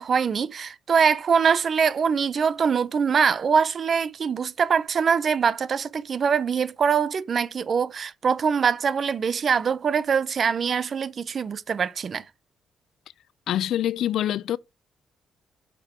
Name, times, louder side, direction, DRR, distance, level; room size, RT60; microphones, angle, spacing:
voice 1, 0.0-12.2, right 6 dB, 50° right, 0.6 m, -23 dB
voice 2, 13.5-14.6, left 11 dB, 75° left, 0.4 m, -25 dB
6.0 x 5.3 x 4.5 m
cardioid pair, 90°, 0 cm